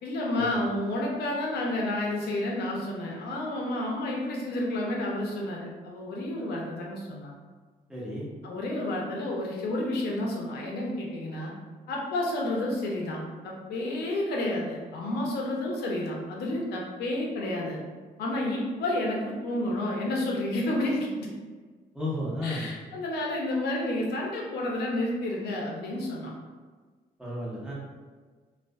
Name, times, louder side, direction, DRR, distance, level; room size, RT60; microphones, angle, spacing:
voice 1, 0.0-7.3 8.4-11.5 11.9-13.2 13.4-17.8 18.2-21.3 22.4-26.3, left 1 dB, 85° left, -2 dB, 0.6 m, -30 dB
voice 2, 7.9-8.3 21.9-22.7 27.2-27.7, left 1 dB, 5° right, -7 dB, 0.8 m, -33 dB
2.4 x 2.3 x 2.2 m, 1.4 s
cardioid pair, 110°, 16 cm